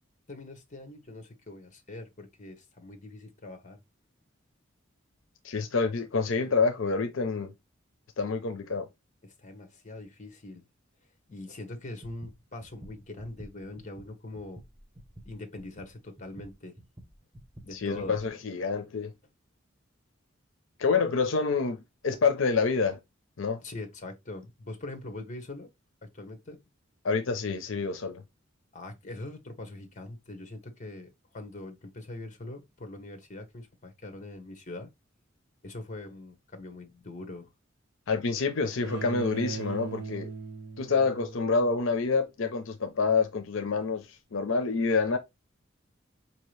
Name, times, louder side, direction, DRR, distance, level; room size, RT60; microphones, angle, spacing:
voice 1, 0.3-3.8 9.2-10.6 11.3-14.6 15.2-16.8 17.6-18.2 23.6-25.7 26.0-26.6 28.7-34.9 35.6-37.5, left 2 dB, 40° left, 0.9 m, -42 dB
voice 2, 5.4-7.5 8.2-8.9 17.7-19.1 20.8-21.8 22.0-23.0 23.4-23.6 27.0-28.2 38.1-40.3 40.8-45.2, left 4 dB, 75° left, 0.6 m, -27 dB
sound 1, 11.8-18.3, right 1 dB, 15° right, 0.6 m, -50 dB
Bowed string instrument, 38.8-41.9, right 3 dB, 60° right, 0.7 m, -38 dB
4.6 x 2.8 x 3.1 m
head